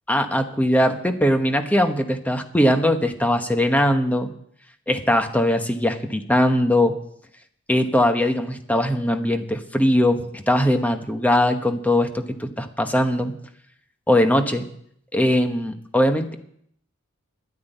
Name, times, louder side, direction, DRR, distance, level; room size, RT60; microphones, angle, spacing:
voice 1, 0.1-4.3 4.9-7.0 7.7-13.3 14.1-14.7 15.1-16.4, left 1 dB, 5° left, 6 dB, 1.1 m, -20 dB
12.0 x 9.5 x 9.2 m, 0.69 s
head